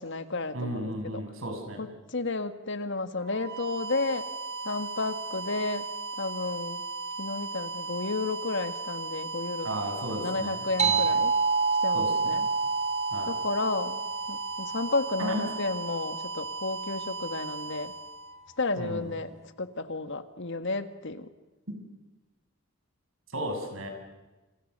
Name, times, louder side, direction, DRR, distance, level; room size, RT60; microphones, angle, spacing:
voice 1, 0.0-1.2 1.8-4.3 4.6-5.9 6.2-6.9 7.2-9.7 10.1-11.4 11.8-12.5 13.3-17.9 18.6-19.3 19.6-21.3, left 3 dB, 65° left, 10 dB, 1.9 m, -32 dB
voice 2, 0.5-1.8 9.6-11.1 11.9-12.5 13.1-13.3 15.2-15.4 18.8-19.1 23.3-23.9, right 1 dB, 80° right, 4 dB, 7.0 m, -34 dB
sound 1, 3.2-19.0, right 3 dB, 50° right, 2.1 m, -37 dB
sound 2, 10.8-15.8, right 5 dB, 35° right, 3.2 m, -28 dB
29.0 x 27.5 x 6.8 m, 1.1 s
head